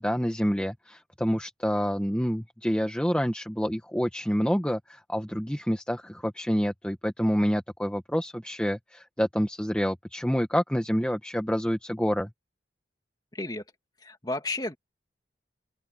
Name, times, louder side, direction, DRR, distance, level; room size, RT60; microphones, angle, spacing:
voice 1, 0.0-12.3, equal, 5° left, 1.1 m, -27 dB
voice 2, 13.3-13.6 14.0-14.8, left 2 dB, 20° left, 2.6 m, -32 dB
open air
head